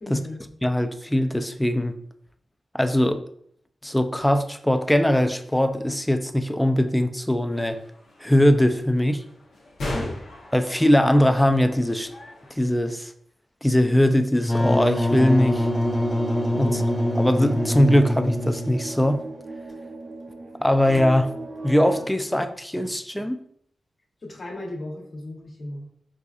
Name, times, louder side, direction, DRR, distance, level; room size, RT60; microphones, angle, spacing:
voice 1, 0.0-0.4 9.9-10.2 16.6-17.0 24.2-25.9, left 1 dB, 55° left, -1 dB, 1.1 m, -36 dB
voice 2, 0.6-1.9 2.7-3.2 3.8-7.8 8.2-9.2 10.5-12.1 12.6-13.1 13.6-15.7 16.5-16.8 17.2-19.2 20.6-21.3 21.6-23.4, left 1 dB, 10° left, 9 dB, 0.4 m, -21 dB
sound 1, 7.5-12.5, left 1 dB, 80° left, 0.9 m, -38 dB
Wind instrument woodwind instrument, 14.4-18.9, left 1 dB, 30° left, 1.3 m, -24 dB
sound 2, 15.1-22.1, right 2 dB, 70° right, 0.6 m, -36 dB
4.8 x 2.5 x 2.5 m, 0.66 s
cardioid pair, 50°, 0 cm